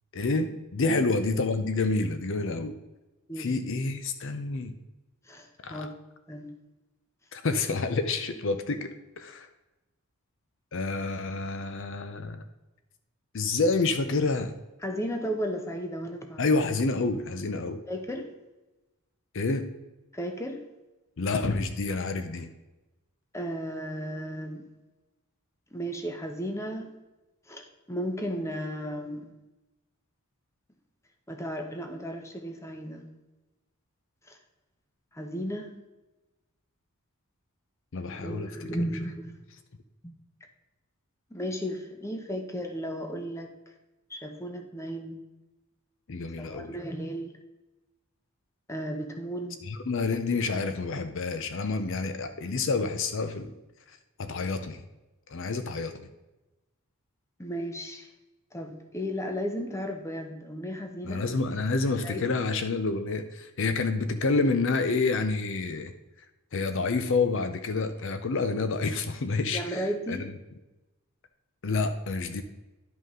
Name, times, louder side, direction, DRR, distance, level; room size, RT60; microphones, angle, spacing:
voice 1, 0.1-2.8 3.4-4.8 5.6-5.9 7.3-9.5 10.7-12.4 13.3-14.5 16.4-17.8 19.3-19.7 21.2-22.5 37.9-38.7 46.1-46.8 49.6-53.5 53.9-54.8 55.3-56.0 61.0-65.9 66.5-70.2 71.6-72.4, left 3 dB, 60° left, 9 dB, 0.6 m, -28 dB
voice 2, 5.3-5.9 6.3-6.5 14.8-16.4 17.9-18.3 20.1-20.6 23.3-24.6 25.7-26.9 27.5-29.3 31.3-33.1 34.3-34.4 35.1-35.7 38.1-39.3 41.3-43.5 44.1-45.2 46.4-47.3 48.7-49.6 57.4-58.1 58.5-61.2 62.0-62.2 69.5-70.3, equal, 15° left, 4 dB, 0.9 m, -34 dB
11.0 x 5.4 x 3.7 m, 1.0 s
head